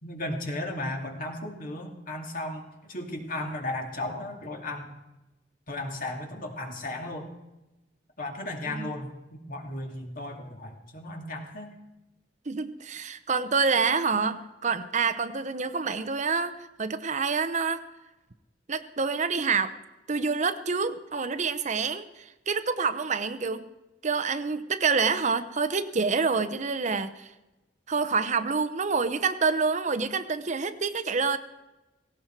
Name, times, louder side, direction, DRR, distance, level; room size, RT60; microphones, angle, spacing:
voice 1, 0.0-4.9 5.7-7.3 8.2-11.8, left 1 dB, 50° left, 2 dB, 2.5 m, -35 dB
voice 2, 12.5-17.8 18.7-19.7 20.1-23.7 24.0-27.3 27.9-31.4, right 5 dB, 40° right, 11 dB, 0.8 m, -27 dB
17.5 x 17.0 x 4.6 m, 1.0 s
head